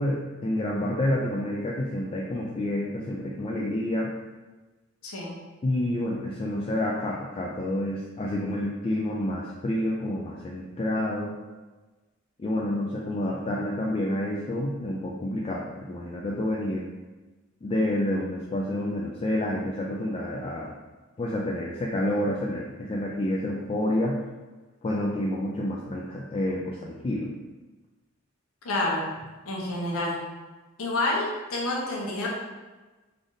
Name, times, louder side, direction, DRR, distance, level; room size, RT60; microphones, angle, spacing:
voice 1, 0.0-4.1 5.6-11.4 12.4-16.9 17.6-20.7 21.2-24.2 24.8-27.3, left 1 dB, 25° left, -2 dB, 0.3 m, -29 dB
voice 2, 5.0-5.4 28.6-29.0 29.4-30.2 30.8-32.3, left 2 dB, 85° left, -2 dB, 0.8 m, -28 dB
3.3 x 2.5 x 3.9 m, 1.2 s
head